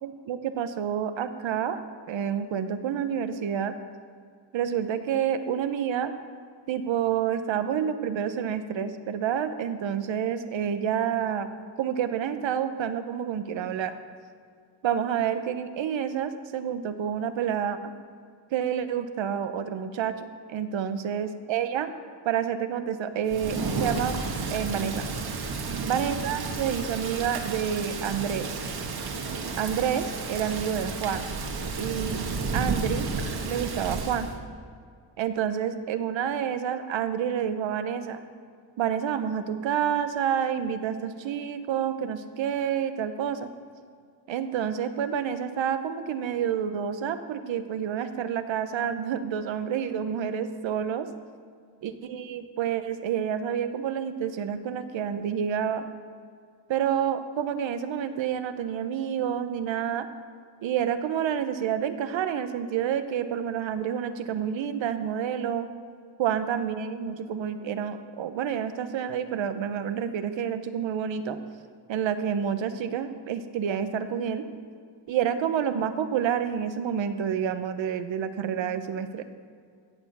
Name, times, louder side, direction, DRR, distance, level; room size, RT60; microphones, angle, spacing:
voice 1, 0.0-1.8 2.1-3.7 4.5-6.1 6.7-11.5 11.8-13.9 14.8-17.8 18.5-21.9 22.2-24.2 24.5-25.1 25.8-28.6 29.6-31.2 31.8-32.2 32.5-33.1 33.4-34.3 35.2-38.2 38.8-43.5 44.3-51.1 51.8-55.8 56.7-60.1 60.6-65.7 66.2-71.4 71.9-74.4 75.1-79.2, right 8 dB, 75° right, 10 dB, 1.1 m, -29 dB
Thunder / Rain, 23.3-34.3, right 4 dB, 55° right, 1.8 m, -32 dB
16.5 x 7.1 x 6.8 m, 2.1 s
cardioid pair, 105°, 45 cm